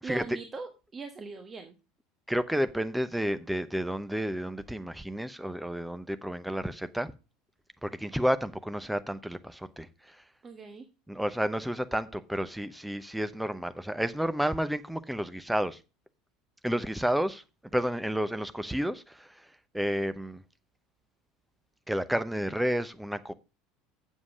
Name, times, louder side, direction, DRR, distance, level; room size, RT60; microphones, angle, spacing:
voice 1, 0.0-1.7 10.4-10.9, right 3 dB, 25° right, 1.2 m, -40 dB
voice 2, 2.3-7.1 7.8-10.2 11.1-15.8 16.6-17.4 17.7-19.5 19.7-20.4 21.9-23.3, equal, 5° right, 0.8 m, -31 dB
8.3 x 7.4 x 5.0 m
figure-of-eight pair, 70°, 0 cm